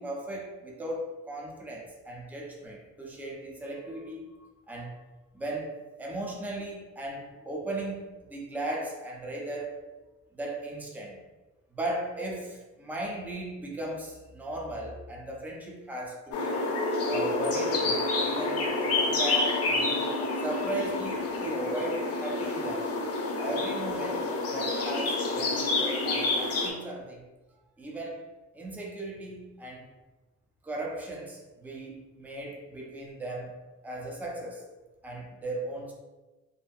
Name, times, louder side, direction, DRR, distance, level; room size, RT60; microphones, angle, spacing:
voice 1, 0.0-5.0 5.3-9.9 10.3-11.2 11.7-16.6 17.0-20.1 20.4-22.9 23.4-27.3 27.8-28.2 28.5-29.9 30.6-33.6 33.8-34.7 35.0-35.9, right 1 dB, 5° right, -2 dB, 0.5 m, -37 dB
sound 1, 16.3-26.7, left 2 dB, 55° left, 0.7 m, -28 dB
2.6 x 2.5 x 2.3 m, 1.1 s
cardioid pair, 90°, 30 cm